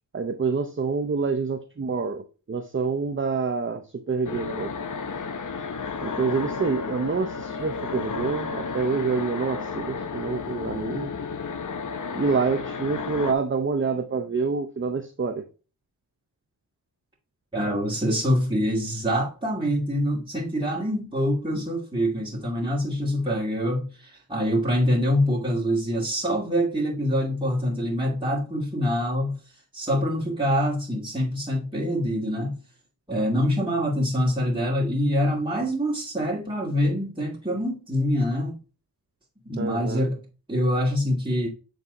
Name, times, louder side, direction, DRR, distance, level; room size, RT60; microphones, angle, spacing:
voice 1, 0.1-2.2 2.5-3.8 4.1-4.7 6.0-11.1 12.1-15.4 39.6-40.1, right 4 dB, 30° right, 0.8 m, -27 dB
sound 1, 4.2-13.3, left 5 dB, 50° left, 0.9 m, -32 dB
voice 2, 17.5-29.4 29.7-32.5 33.1-38.6 39.5-40.2 40.5-41.5, equal, 10° right, 2.3 m, -25 dB
7.7 x 3.6 x 3.9 m
cardioid pair, 50°, 42 cm